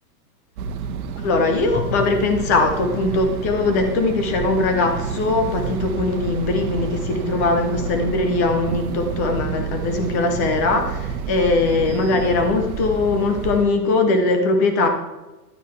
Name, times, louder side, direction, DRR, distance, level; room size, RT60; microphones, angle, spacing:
sound 1, 0.6-13.6, right 6 dB, 60° right, 1.2 m, -29 dB
voice 1, 1.2-14.9, left 3 dB, 10° left, 6 dB, 0.3 m, -21 dB
Drum, 1.7-4.7, left 3 dB, 75° left, 3.7 m, -37 dB
11.5 x 8.9 x 3.1 m, 1.1 s
hypercardioid pair, 125°, 48 cm